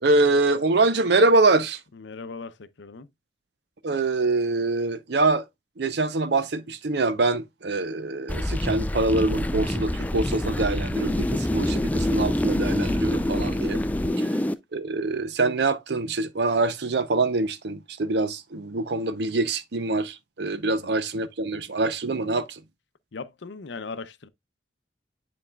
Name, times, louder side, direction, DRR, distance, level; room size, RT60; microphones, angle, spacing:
voice 1, 0.0-1.8 3.8-5.5 5.8-13.8 14.2-14.3 14.7-22.6, right 2 dB, 65° right, 0.6 m, -24 dB
voice 2, 1.9-3.1 14.0-14.4 20.7-20.9 23.1-24.3, left 4 dB, 75° left, 0.6 m, -39 dB
sound 1, 8.3-14.5, left 1 dB, 10° left, 0.3 m, -26 dB
9.9 x 4.2 x 2.3 m
head